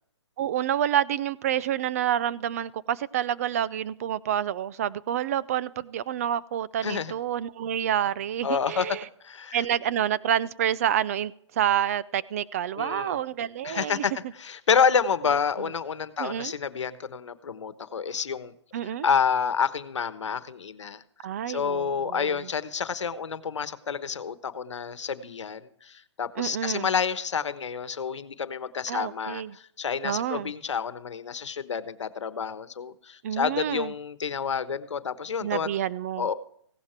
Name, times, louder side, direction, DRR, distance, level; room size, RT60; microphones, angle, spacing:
voice 1, 0.4-9.0 9.5-14.0 15.6-15.7 16.2-16.5 18.7-19.1 21.2-22.4 26.4-26.9 28.9-29.6 30.0-30.5 33.2-33.9 35.4-36.3, right 10 dB, 30° right, 0.5 m, -28 dB
voice 2, 6.8-7.1 8.4-9.0 9.2-9.6 12.7-13.2 13.6-14.1 14.4-18.5 19.0-21.0 21.5-35.7 36.2-36.3, left 6 dB, 80° left, 1.1 m, -29 dB
16.5 x 11.5 x 4.5 m
hypercardioid pair, 165°, 15 cm